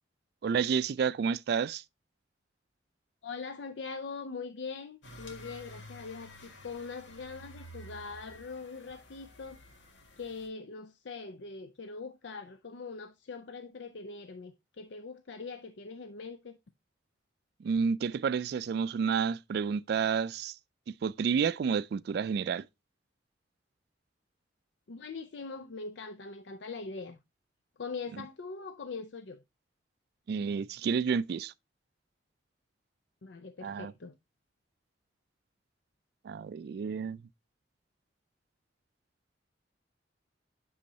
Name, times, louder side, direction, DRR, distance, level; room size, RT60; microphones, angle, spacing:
voice 1, 0.4-1.8 17.6-20.6 21.0-22.6 30.3-31.5 33.6-33.9 36.2-37.2, right 6 dB, 60° right, 0.3 m, -30 dB
voice 2, 3.2-9.6 10.2-16.6 24.9-27.2 27.8-29.4 33.2-34.1, left 4 dB, 70° left, 0.5 m, -42 dB
sound 1, 5.0-10.5, equal, 90° left, 1.9 m, -51 dB
8.4 x 6.3 x 2.7 m
head